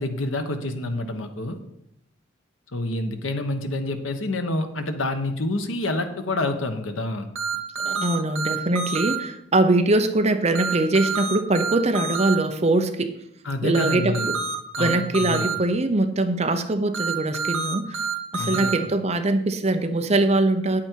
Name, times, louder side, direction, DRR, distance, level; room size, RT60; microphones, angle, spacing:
voice 1, 0.0-1.6 2.7-7.3 13.4-14.3 14.8-15.5 18.4-18.8, left 2 dB, 90° left, 7 dB, 1.2 m, -28 dB
sound 1, 7.3-9.2 10.5-12.4 13.7-15.5 16.9-18.7, right 4 dB, 75° right, 1.8 m, -27 dB
voice 2, 7.8-13.2 13.6-14.4 14.8-18.1 18.3-20.8, right 2 dB, 35° right, 7 dB, 0.8 m, -22 dB
9.2 x 8.6 x 4.6 m, 0.79 s
head